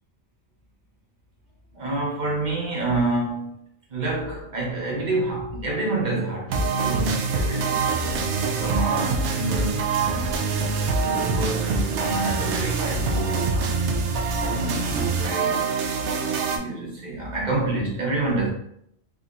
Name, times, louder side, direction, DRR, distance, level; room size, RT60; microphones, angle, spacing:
voice 1, 1.7-3.5 3.9-7.8 8.6-10.4 11.0-13.8 14.4-15.7 16.5-18.5, right 2 dB, 40° right, 0.9 m, -28 dB
sound 1, 6.5-16.6, right 4 dB, 70° right, 0.8 m, -24 dB
3.6 x 2.8 x 2.5 m
omnidirectional pair, 1.3 m